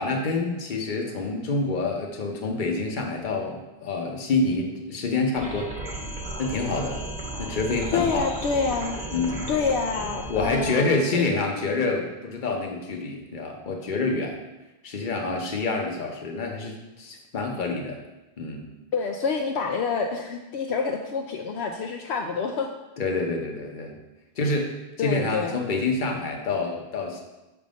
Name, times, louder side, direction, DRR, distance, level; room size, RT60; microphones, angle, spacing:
voice 1, 0.0-5.7 6.4-7.0 7.4-8.3 9.1-9.4 10.3-14.3 14.8-18.0 18.4-18.7 23.0-24.0 24.4-24.7 25.0-27.2, left 3 dB, 50° left, 1 dB, 1.0 m, -27 dB
sound 1, 5.4-10.6, right 2 dB, 40° right, 1.2 m, -35 dB
voice 2, 7.9-9.0 9.5-11.2 18.9-22.7 25.0-25.5, left 5 dB, 75° left, 2 dB, 0.8 m, -27 dB
6.4 x 3.6 x 5.1 m, 1.0 s
omnidirectional pair, 1.1 m